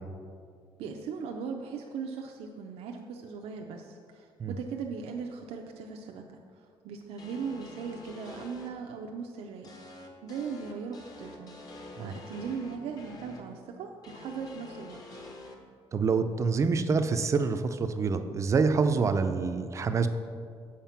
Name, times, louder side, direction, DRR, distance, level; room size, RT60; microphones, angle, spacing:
voice 1, 0.8-11.5 11.9-15.0, right 5 dB, 85° right, 2 dB, 0.5 m, -39 dB
sound 1, 7.2-8.7 9.6-13.4 14.0-15.5, left 2 dB, 40° left, 0.9 m, -47 dB
voice 2, 15.9-20.1, right 4 dB, 30° right, 9 dB, 0.4 m, -26 dB
7.3 x 5.0 x 5.7 m, 2.2 s
cardioid pair, 155°, 10 cm